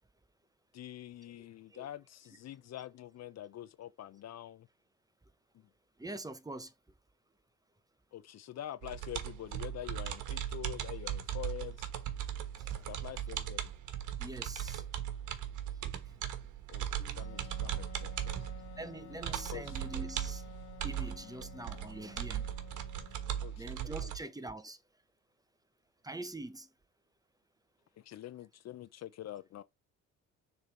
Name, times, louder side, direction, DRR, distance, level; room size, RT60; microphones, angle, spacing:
voice 1, 0.7-4.7 5.5-5.7 8.1-11.9 12.9-13.6 16.7-16.9 17.1-18.4 19.5-19.7 23.4-23.7 24.0-24.1 28.0-29.6, left 12 dB, 60° left, 0.6 m, -46 dB
voice 2, 6.0-6.7 12.6-12.8 14.2-14.8 17.0-17.5 18.8-20.4 20.8-22.5 23.6-24.8 26.0-26.7, right 2 dB, 10° right, 0.8 m, -44 dB
sound 1, 8.8-24.2, right 10 dB, 80° right, 1.3 m, -38 dB
Wind instrument woodwind instrument, 17.2-23.6, left 13 dB, 80° left, 1.0 m, -53 dB
6.7 x 3.4 x 4.4 m
cardioid pair, 90°, 30 cm